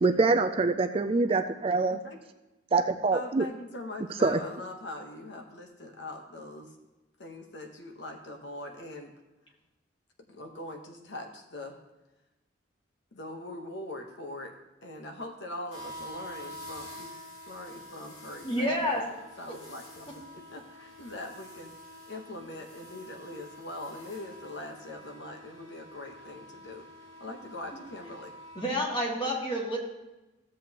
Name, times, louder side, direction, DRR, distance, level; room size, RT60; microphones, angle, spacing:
voice 1, 0.0-2.0 2.7-3.5 4.2-4.4, right 3 dB, 30° right, 8 dB, 0.3 m, -25 dB
voice 2, 1.9-2.2 3.1-6.7 7.2-9.1 10.3-11.8 13.1-17.1 17.5-19.0 19.4-20.1 20.5-21.7 22.1-26.9 27.2-28.3, left 1 dB, 65° left, 3 dB, 1.1 m, -42 dB
sound 1, 15.7-28.7, equal, 90° left, 3.0 m, -48 dB
voice 3, 18.4-19.0 19.5-19.6 28.6-29.8, equal, 30° left, -2 dB, 2.1 m, -29 dB
15.0 x 7.6 x 2.9 m, 1.0 s
head